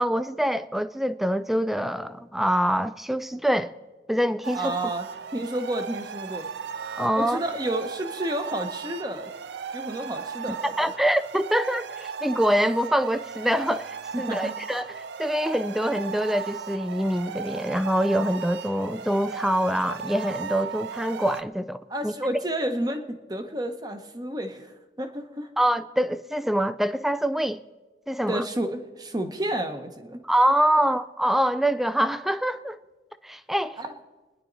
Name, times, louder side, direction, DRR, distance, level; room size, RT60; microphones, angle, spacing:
voice 1, 0.0-3.7 4.1-4.8 7.0-7.4 10.6-22.1 25.6-27.6 28.1-28.4 30.2-32.8 33.2-33.8, equal, ahead, 0.4 m, -25 dB
sound 1, 4.4-21.4, right 6 dB, 75° right, 0.5 m, -36 dB
voice 2, 4.5-5.1 5.3-6.5 7.1-9.3 9.7-10.9 14.1-14.6 21.9-25.5 28.3-30.2 30.8-30.9 33.8-33.9, right 1 dB, 20° right, 1.0 m, -31 dB
27.0 x 10.5 x 4.0 m
head